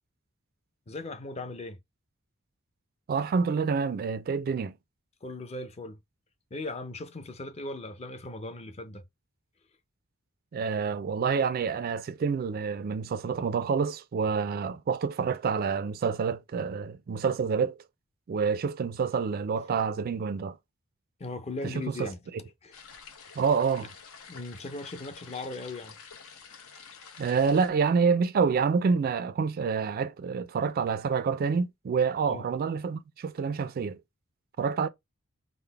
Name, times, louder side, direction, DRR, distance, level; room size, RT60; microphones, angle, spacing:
voice 1, 0.9-1.8 5.2-6.0 6.5-9.0 21.2-22.2 22.6-22.8 24.3-26.0 32.3-32.5, left 2 dB, 30° left, 0.5 m, -38 dB
voice 2, 3.1-4.7 10.5-17.8 18.3-20.6 22.0-22.1 23.4-23.9 27.2-34.0 34.6-34.9, right 5 dB, 45° right, 0.3 m, -27 dB
sound 1, 22.7-27.7, left 6 dB, 80° left, 0.8 m, -49 dB
3.7 x 2.0 x 3.3 m
head